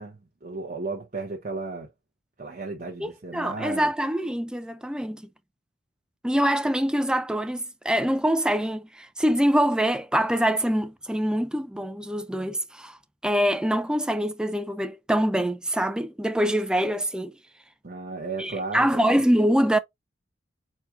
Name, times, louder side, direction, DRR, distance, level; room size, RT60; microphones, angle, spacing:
voice 1, 0.0-1.9 2.4-3.9 17.8-19.1, right 3 dB, 40° right, 1.1 m, -34 dB
voice 2, 3.0-5.3 6.2-13.0 13.2-17.3 18.4-19.8, equal, 5° right, 0.4 m, -24 dB
4.4 x 2.3 x 4.4 m
head